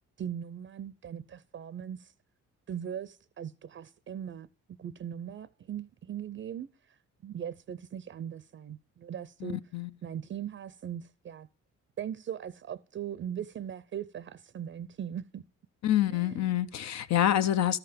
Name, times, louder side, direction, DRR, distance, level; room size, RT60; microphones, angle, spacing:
voice 1, 0.2-2.1 2.7-4.5 4.8-7.0 7.2-9.6 10.0-11.5 12.0-15.4 16.1-16.6, right 9 dB, 40° right, 0.5 m, -39 dB
voice 2, 9.4-9.9 15.8-17.8, left 12 dB, 65° left, 0.6 m, -27 dB
13.0 x 5.8 x 5.1 m
cardioid pair, 90°, 30 cm